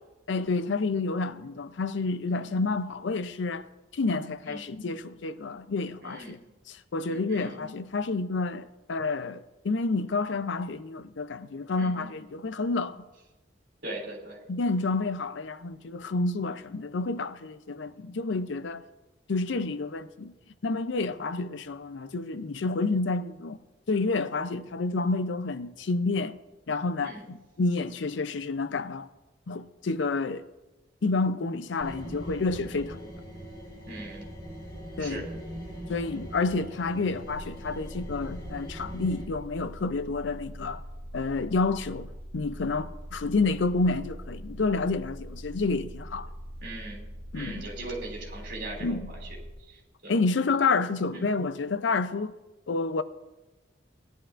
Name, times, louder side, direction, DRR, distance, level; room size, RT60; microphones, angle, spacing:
voice 1, 0.3-3.7 3.9-6.4 6.7-13.0 14.5-18.8 19.3-20.3 20.6-23.6 23.9-26.4 26.7-29.1 29.5-30.4 31.0-33.0 35.0-35.3 35.9-40.8 41.1-46.3 47.3-47.7 48.8-49.1 50.1-52.4 52.7-53.0, left 3 dB, 70° left, 0.5 m, -29 dB
voice 2, 2.3-2.6 4.5-4.6 6.0-6.4 7.1-7.6 11.7-12.1 13.8-14.4 27.0-27.2 33.9-34.3 35.0-35.3 46.6-47.0 47.3-49.3 49.7-50.1 51.1-51.2, right 2 dB, 60° right, 3.4 m, -40 dB
sound 1, 31.8-39.2, right 1 dB, 25° left, 4.5 m, -41 dB
sound 2, 37.2-49.5, equal, 45° left, 4.4 m, -42 dB
18.5 x 11.0 x 2.5 m
head